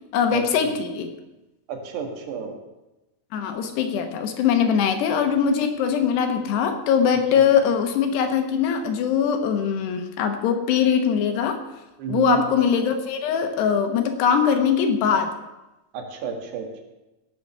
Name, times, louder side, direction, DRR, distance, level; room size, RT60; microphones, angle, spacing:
voice 1, 0.1-1.1 3.3-11.6 12.1-15.3, left 7 dB, 75° left, 6 dB, 3.2 m, -21 dB
voice 2, 1.7-2.6 12.0-12.4 15.9-16.8, right 7 dB, 75° right, 3 dB, 3.7 m, -30 dB
17.0 x 6.9 x 6.8 m, 1.0 s
omnidirectional pair, 5.0 m